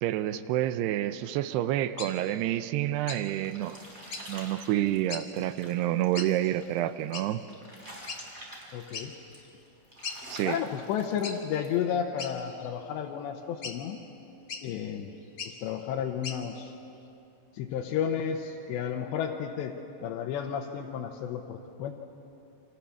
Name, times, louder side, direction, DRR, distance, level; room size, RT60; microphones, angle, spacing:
voice 1, 0.0-3.9 4.3-7.4 10.3-10.6, right 13 dB, 80° right, 12 dB, 2.6 m, -28 dB
sound 1, 2.0-2.1 3.1-3.2 4.1-4.3 5.1-5.2 6.1-6.3 7.1-7.3 8.1-8.2 8.9-9.1 9.5-9.6 10.0-10.2 11.2-11.4 12.2-12.7 13.6-13.8 14.5-14.6 15.3-15.5 16.2-16.4, left 5 dB, 45° left, 1.6 m, -38 dB
sound 2, 2.9-11.8, equal, 15° right, 4.5 m, -48 dB
voice 2, 8.7-9.1 10.5-14.0 14.6-15.1 15.5-16.7 17.5-19.7 20.0-21.9, left 8 dB, 80° left, 0 dB, 3.2 m, -32 dB
29.5 x 25.0 x 7.2 m, 2.8 s
omnidirectional pair, 5.2 m